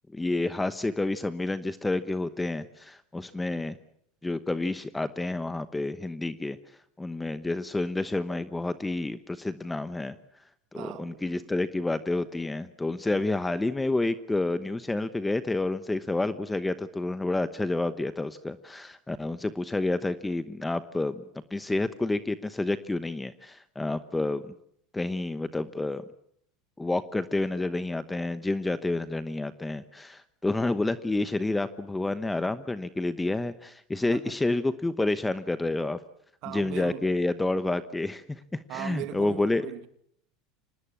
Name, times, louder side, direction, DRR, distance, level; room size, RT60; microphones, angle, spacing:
voice 1, 0.1-3.8 4.2-6.6 7.0-10.1 10.7-21.2 21.5-24.5 24.9-26.0 26.8-36.0 36.5-39.6, left 2 dB, 10° left, 1.0 m, -29 dB
voice 2, 10.7-11.5 34.1-34.3 36.4-37.1 38.7-39.9, right 14 dB, 60° right, 2.3 m, -39 dB
25.5 x 19.0 x 8.6 m
supercardioid pair, 110°, 0 cm